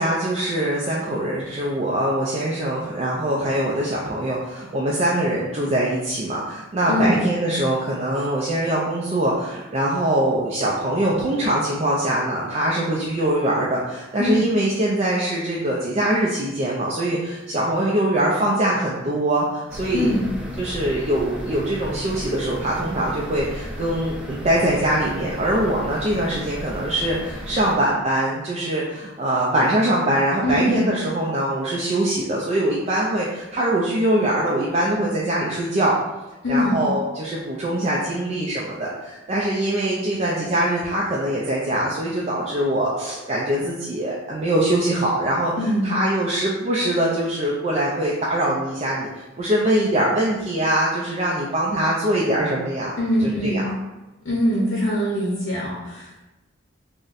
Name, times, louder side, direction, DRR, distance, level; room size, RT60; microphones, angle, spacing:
voice 1, 0.0-20.1 20.6-35.9 36.5-45.5 45.8-52.9 53.4-53.6, right 1 dB, 30° right, -5 dB, 0.3 m, -23 dB
sound 1, 19.7-27.7, equal, 5° right, 0.7 m, -34 dB
voice 2, 19.9-20.3 30.4-30.7 36.4-36.8 45.6-45.9 53.0-53.7 54.2-56.2, equal, 65° left, -5 dB, 0.6 m, -22 dB
3.9 x 2.1 x 2.5 m, 1.1 s
head